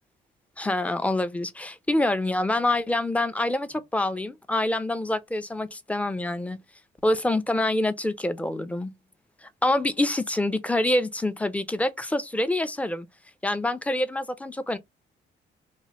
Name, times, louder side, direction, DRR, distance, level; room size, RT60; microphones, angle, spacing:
voice 1, 0.6-6.6 7.0-8.9 9.4-13.1 13.4-14.8, left 1 dB, 5° left, 0.5 m, -26 dB
3.0 x 2.2 x 2.9 m
cardioid pair, 90°, 20 cm